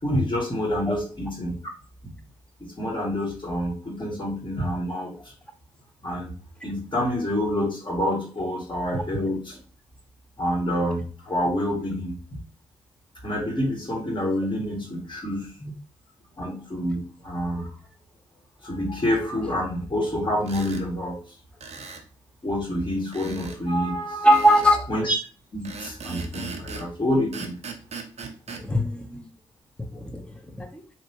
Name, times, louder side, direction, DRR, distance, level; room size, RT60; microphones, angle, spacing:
voice 1, 0.0-1.6 2.0-2.1 2.6-5.1 6.0-6.3 6.6-9.6 10.4-12.4 13.2-15.5 16.4-17.7 18.6-21.2 22.4-24.3 24.9-25.2 25.5-27.6, left 1 dB, 40° left, -2 dB, 1.8 m, -27 dB
sound 1, 20.4-20.9 21.6-22.1 23.1-23.6 24.3-24.8 25.6-26.9 27.3-28.6, right 5 dB, 55° right, 0.7 m, -38 dB
voice 2, 24.2-24.9 28.6-29.3 29.8-30.8, equal, 10° left, 4 dB, 0.9 m, -21 dB
3.3 x 2.9 x 2.8 m, 0.38 s
supercardioid pair, 40°, 13 cm